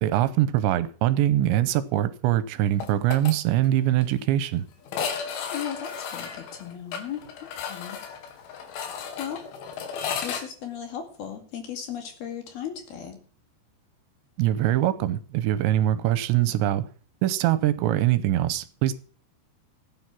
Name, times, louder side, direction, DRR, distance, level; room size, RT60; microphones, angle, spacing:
voice 1, 0.0-4.7 14.4-16.8 17.2-18.9, right 13 dB, 80° right, 2.9 m, -23 dB
sound 1, 2.8-3.3 3.6-3.7 4.0-4.1 4.9-10.4, left 7 dB, 85° left, 4.3 m, -34 dB
voice 2, 5.5-8.0 8.8-8.9 9.2-9.4 10.2-13.2, left 9 dB, 60° left, 3.8 m, -36 dB
15.0 x 9.4 x 6.0 m
omnidirectional pair, 5.4 m